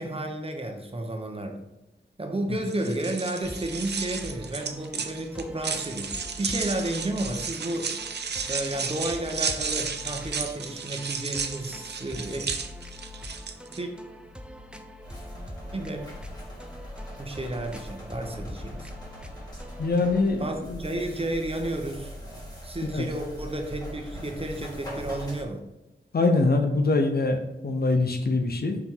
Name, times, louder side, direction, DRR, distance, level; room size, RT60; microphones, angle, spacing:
voice 1, 0.0-1.6 2.2-7.9 8.4-12.5 13.7-13.9 15.7-16.0 17.2-18.9 20.4-22.1 22.6-25.6, right 1 dB, 30° right, 4 dB, 1.0 m, -32 dB
sound 1, 2.6-13.8, right 5 dB, 65° right, 0.6 m, -33 dB
sound 2, 3.4-20.3, left 1 dB, 5° right, 0.6 m, -44 dB
sound 3, 15.0-25.4, equal, 20° left, 2.1 m, -41 dB
voice 2, 19.8-20.8 22.9-23.1 26.1-28.8, left 3 dB, 60° left, 4 dB, 0.8 m, -24 dB
5.9 x 3.5 x 4.5 m, 0.97 s
wide cardioid pair, 70°, 19 cm